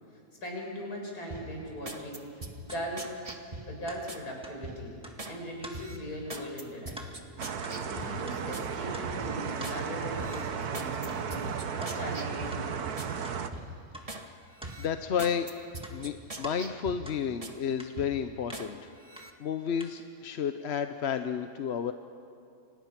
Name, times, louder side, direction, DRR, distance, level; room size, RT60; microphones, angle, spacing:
voice 1, 0.4-3.1 3.7-4.9 5.2-7.2 7.7-13.0, equal, 70° left, -1 dB, 6.3 m, -39 dB
sound 1, 1.3-4.2 4.6-5.4 5.7-8.7 9.1-9.8 10.2-13.1 13.5-14.3 14.6-17.6 18.0-18.7 19.0-19.3, right 1 dB, 25° right, 1.4 m, -43 dB
sound 2, 2.7-2.8 3.3-3.4 3.9-4.0 4.4-4.6 5.0-5.2 5.6-5.8 6.3-6.4 6.9-7.1 7.6-7.8 8.2-8.4 8.9-9.1 9.6-9.7 10.3-10.5 11.1-11.2 11.8-12.0 12.5-12.7 13.2-13.4 13.9-14.1 14.6-15.4 15.8-16.6 17.0-17.2 17.8-17.9 18.5-18.6 19.1-19.3 19.8-19.9, equal, 5° right, 1.7 m, -45 dB
sound 3, 7.4-13.5, right 6 dB, 70° right, 1.6 m, -34 dB
voice 2, 14.8-15.5 15.9-18.8 19.4-21.9, left 7 dB, 50° left, 8 dB, 0.9 m, -31 dB
30.0 x 26.0 x 6.0 m, 2.5 s
omnidirectional pair, 1.7 m